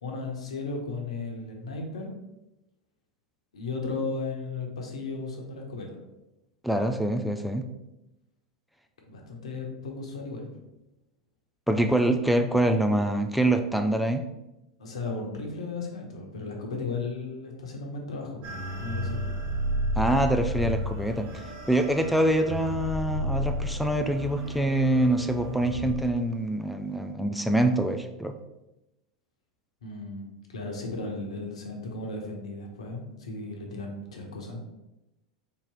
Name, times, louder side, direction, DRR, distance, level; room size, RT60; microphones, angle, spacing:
voice 1, 0.0-2.1 3.5-6.0 9.1-10.5 14.8-19.2 29.8-34.6, left 3 dB, 75° left, 1 dB, 1.0 m, -35 dB
voice 2, 6.6-7.6 11.7-14.2 20.0-21.3 21.7-28.3, right 1 dB, ahead, 5 dB, 0.3 m, -25 dB
sound 1, 18.4-25.9, equal, 40° right, 0.9 m, -32 dB
3.8 x 3.0 x 4.2 m, 0.94 s
figure-of-eight pair, 85°, 3 cm